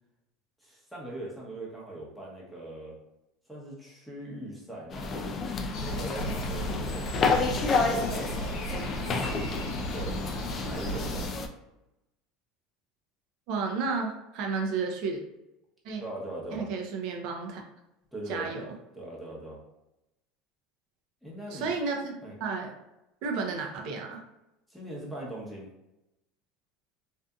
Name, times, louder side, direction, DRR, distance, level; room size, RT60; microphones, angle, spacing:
voice 1, 0.6-3.0 3.5-5.3 5.8-10.2 10.6-11.3 16.0-16.7 18.1-18.7 18.9-19.6 21.2-21.7 22.2-22.3 24.7-25.7, right 1 dB, 5° left, -5 dB, 0.8 m, -41 dB
sound 1, 4.9-11.5, left 4 dB, 35° left, 0.3 m, -30 dB
sound 2, 5.7-11.3, right 1 dB, 65° left, 0.7 m, -35 dB
voice 2, 13.5-15.2 15.8-16.0 16.5-17.6 18.3-18.6 21.5-22.7 23.2-24.2, right 4 dB, 65° right, 2 dB, 0.5 m, -32 dB
2.6 x 2.5 x 2.3 m, 0.91 s
supercardioid pair, 110°, 0 cm